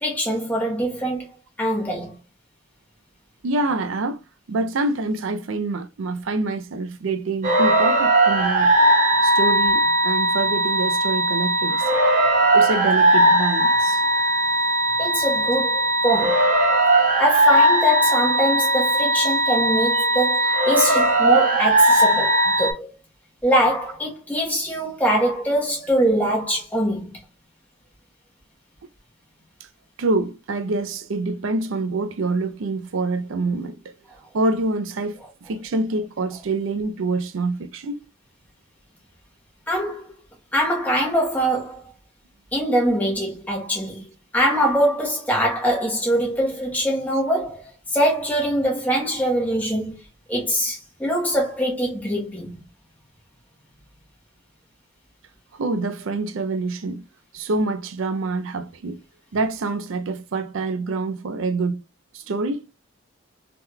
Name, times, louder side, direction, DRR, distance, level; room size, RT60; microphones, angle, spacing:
voice 1, 0.0-1.3 1.6-2.1 15.0-16.5 17.2-22.9 23.4-27.1 39.7-40.0 40.5-41.9 42.5-44.0 44.3-47.6 47.9-50.0 50.3-52.6, equal, 10° left, 1.0 m, -23 dB
voice 2, 3.4-4.2 4.5-8.7 9.2-11.9 12.5-14.0 30.0-33.8 34.3-35.2 35.5-38.0 55.5-57.0 57.3-59.0 59.3-61.8 62.1-62.6, right 3 dB, 70° right, 0.4 m, -26 dB
sound 1, 7.4-22.7, right 1 dB, 40° right, 1.2 m, -18 dB
3.5 x 2.9 x 2.2 m
head